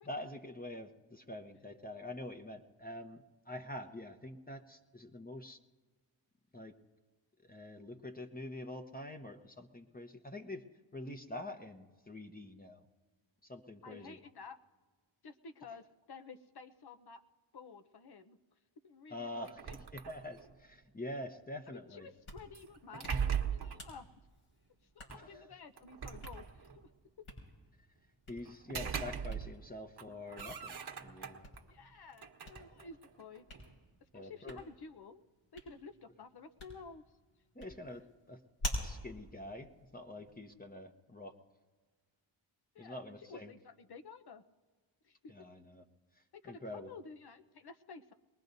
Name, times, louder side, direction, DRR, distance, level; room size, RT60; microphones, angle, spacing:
voice 1, 0.0-5.6 6.5-6.7 7.4-10.6 10.9-12.8 13.4-14.2 19.1-19.6 19.9-22.1 25.2-25.5 28.3-31.5 34.1-34.6 37.5-38.4 38.8-41.3 42.8-43.5 45.3-45.8 46.4-46.9, left 1 dB, 20° left, 5 dB, 1.0 m, -46 dB
voice 2, 13.8-14.6 15.2-17.2 17.5-18.4 18.8-19.8 21.7-24.1 24.9-26.7 27.2-27.3 31.7-33.5 34.1-35.2 35.5-37.0 42.7-44.4 45.0-45.3 46.3-48.1, left 4 dB, 50° left, 8 dB, 0.9 m, -52 dB
sound 1, 19.4-20.6 22.5-23.9 25.1-25.2 25.8-26.9 28.4-29.7 30.0-31.6 32.1-33.7, right 7 dB, 50° right, 1.3 m, -40 dB
Hands, 22.0-40.5, left 1 dB, 80° left, 6.0 m, -49 dB
23.0 x 19.5 x 2.7 m, 1.4 s
cardioid pair, 65°, 48 cm